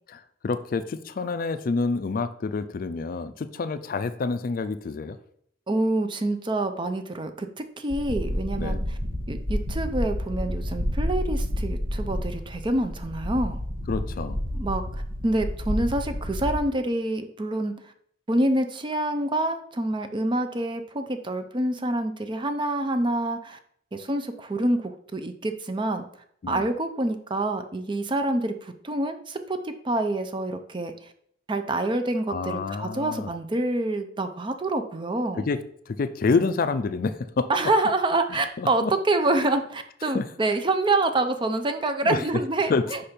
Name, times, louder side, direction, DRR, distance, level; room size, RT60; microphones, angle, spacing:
voice 1, 0.1-5.2 8.6-8.8 13.9-14.4 26.4-26.7 32.3-33.3 35.4-35.6 35.9-37.5 38.3-38.9 40.0-40.3 42.0-42.3 42.7-42.9, left 4 dB, 45° left, 12 dB, 0.4 m, -28 dB
voice 2, 5.7-8.8 9.3-13.6 14.5-17.7 18.3-23.6 23.9-26.1 26.5-30.9 31.5-35.5 37.5-43.0, right 2 dB, 25° right, 8 dB, 0.5 m, -27 dB
sound 1, 7.9-16.6, equal, 85° right, 1.7 m, -30 dB
5.5 x 4.3 x 5.1 m, 0.66 s
head